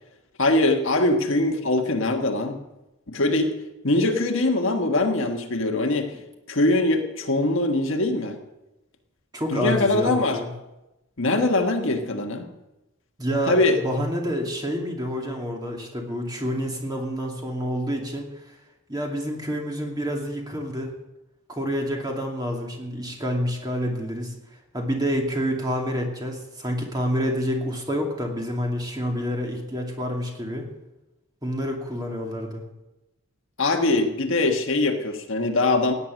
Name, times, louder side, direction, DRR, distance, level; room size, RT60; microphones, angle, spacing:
voice 1, 0.4-2.6 3.1-3.5 3.8-6.1 6.5-8.4 9.5-10.4 11.2-12.5 13.5-13.8 33.6-35.9, left 2 dB, 60° left, 4 dB, 1.5 m, -22 dB
voice 2, 9.3-10.5 13.2-18.5 18.9-20.9 21.5-24.3 24.7-30.7 31.4-32.6, equal, 20° right, 0 dB, 2.6 m, -28 dB
17.0 x 9.9 x 6.4 m, 0.97 s
head